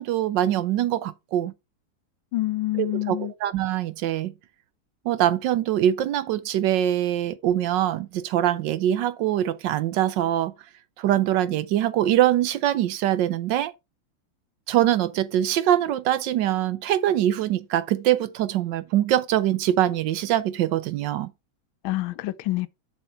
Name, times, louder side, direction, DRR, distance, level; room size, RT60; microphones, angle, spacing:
voice 1, 0.0-1.5 2.8-4.3 5.0-10.5 11.0-13.7 14.7-21.3, right 12 dB, 70° right, 1.2 m, -23 dB
voice 2, 2.3-3.3 21.8-22.7, left 17 dB, 80° left, 1.4 m, -27 dB
7.2 x 6.0 x 4.3 m
omnidirectional pair, 2.2 m